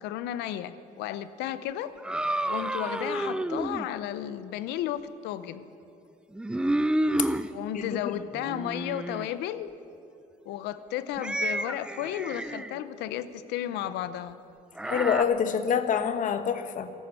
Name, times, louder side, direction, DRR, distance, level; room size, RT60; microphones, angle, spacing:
voice 1, 0.0-1.9 2.5-5.6 7.5-9.7 10.4-14.4, left 11 dB, 85° left, 14 dB, 0.6 m, -33 dB
sound 1, 2.0-3.9 6.3-7.5 8.3-9.3 11.2-12.8 14.8-15.2, right 1 dB, 5° right, 0.4 m, -30 dB
voice 2, 14.9-16.9, left 7 dB, 50° left, 10 dB, 1.0 m, -26 dB
14.0 x 13.0 x 5.6 m, 2.7 s
cardioid pair, 110°, 17 cm